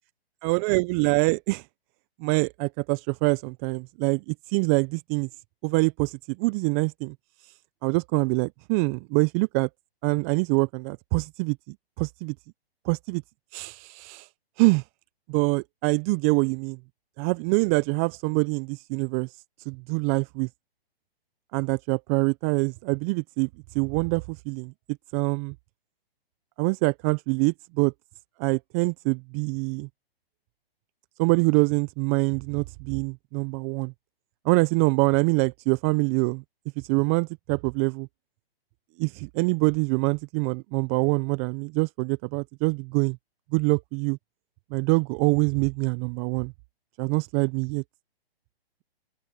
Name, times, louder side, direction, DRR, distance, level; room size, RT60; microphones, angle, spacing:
voice 1, 0.4-1.7 2.2-5.3 5.6-7.1 7.4-7.5 7.8-9.7 10.0-12.3 12.8-13.2 13.5-14.3 14.6-14.8 15.3-16.8 17.2-19.3 19.7-20.5 21.5-23.5 23.7-24.7 25.1-25.5 26.6-27.9 28.4-29.9 31.2-33.9 34.4-36.4 36.8-38.1 39.0-43.2 43.5-44.2 44.7-46.5 47.0-47.8, right 31 dB, 15° right, 0.4 m, -25 dB
open air
figure-of-eight pair, 130°, 31 cm